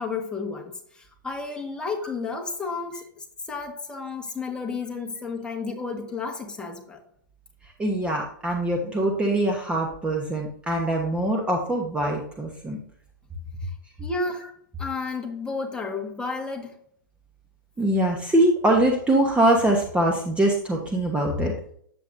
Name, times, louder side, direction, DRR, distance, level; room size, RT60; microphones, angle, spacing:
voice 1, 0.0-7.0 14.0-14.5 14.8-16.7, left 4 dB, 10° left, 1 dB, 1.6 m, -32 dB
voice 2, 7.8-12.8 17.8-21.5, right 1 dB, 10° right, 1 dB, 1.1 m, -23 dB
9.1 x 7.7 x 2.6 m, 0.64 s
hypercardioid pair, 120°, 11 cm